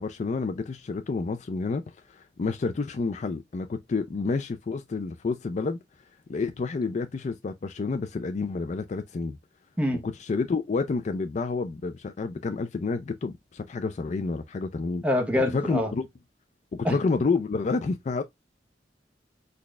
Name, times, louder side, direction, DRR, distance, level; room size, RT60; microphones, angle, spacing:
voice 1, 0.0-1.8 2.1-5.8 6.3-9.4 10.0-15.0 15.5-16.1 16.7-18.2, left 4 dB, 40° left, 0.4 m, -29 dB
voice 2, 15.0-15.9 16.8-17.0, left 1 dB, 10° right, 0.8 m, -25 dB
4.0 x 2.3 x 3.1 m
head